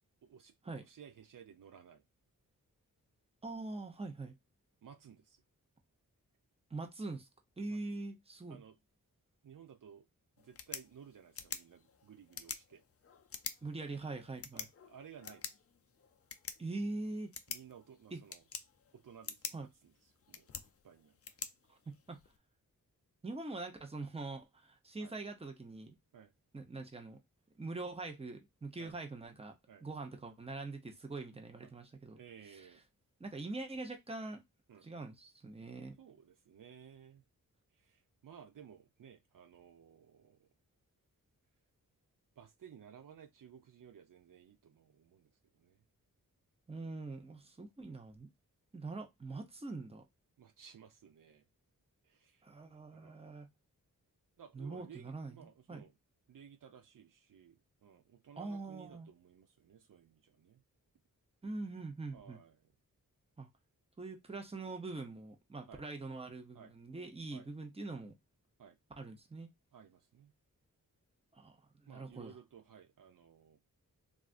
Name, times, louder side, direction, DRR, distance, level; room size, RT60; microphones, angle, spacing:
voice 1, 0.2-0.5 0.9-2.0 4.8-5.4 7.7-7.8 8.5-8.8 9.4-10.0 10.4-12.8 14.5-15.5 17.5-18.4 18.9-19.9 20.3-20.5 20.8-21.4 25.0-25.1 26.1-26.3 28.8-28.9 29.7-29.8 31.6-31.7 32.2-32.8 34.7-34.9 36.0-37.2 37.7-40.5 42.4-45.8 50.4-51.4 52.0-52.4 52.9-53.4 54.4-55.9 56.3-60.6 62.1-62.6 65.7-65.8 66.5-66.7 67.3-67.5 68.6-68.8 69.7-70.3 71.9-73.6, right 8 dB, 70° right, 0.6 m, -57 dB
voice 2, 3.4-4.3 6.7-7.3 7.6-8.6 13.6-14.7 16.6-17.3 18.1-18.2 19.5-19.7 21.7-22.2 23.2-25.9 26.5-27.2 27.6-29.5 29.8-32.2 32.5-32.7 33.2-34.4 34.8-36.0 46.7-48.3 48.7-50.0 52.4-53.5 54.5-55.8 58.4-59.1 61.4-62.4 63.4-63.5 64.0-68.1 69.0-69.5 71.3-71.6 71.8-72.3, right 3 dB, 15° right, 0.7 m, -43 dB
sound 1, 10.4-22.4, left 6 dB, 45° left, 0.5 m, -48 dB
3.3 x 2.5 x 2.4 m
wide cardioid pair, 95°, 34 cm